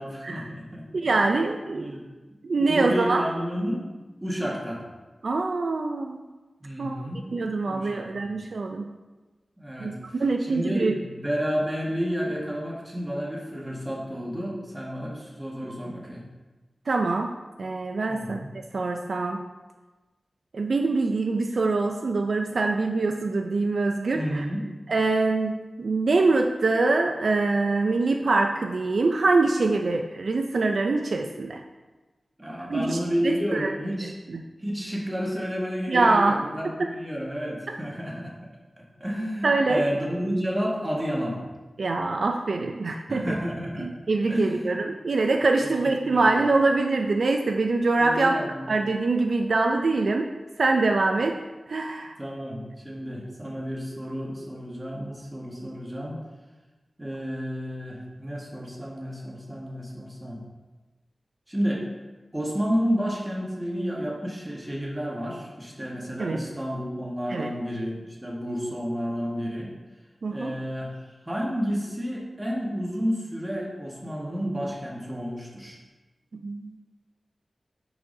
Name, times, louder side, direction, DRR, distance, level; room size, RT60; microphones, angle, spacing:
voice 1, 0.0-1.2 1.7-2.0 2.6-3.8 4.2-4.8 6.6-7.2 7.6-8.3 9.6-9.9 10.4-16.2 18.1-18.5 24.1-24.6 32.4-34.1 34.6-38.3 38.8-41.4 43.1-43.9 44.3-44.8 45.6-46.4 47.9-48.6 52.2-56.2 57.0-60.4 61.5-61.8 62.3-69.7 70.3-70.9 71.2-75.8, equal, 20° right, -3 dB, 1.5 m, -31 dB
voice 2, 0.9-1.9 2.4-3.3 5.2-6.2 6.8-7.0 7.3-8.9 9.8-10.9 16.9-17.3 17.6-18.4 18.7-19.4 20.5-24.5 24.9-31.6 32.7-33.0 33.2-33.7 34.3-34.5 35.9-36.4 36.8-36.9 39.4-39.8 41.8-43.4 43.8-48.4 48.7-50.3 50.6-51.3 51.7-52.1 66.2-66.4 67.3-67.5 70.2-70.5 76.3-76.8, right 3 dB, 75° right, 4 dB, 0.4 m, -24 dB
8.5 x 4.6 x 2.7 m, 1.2 s
wide cardioid pair, 65°, 0 cm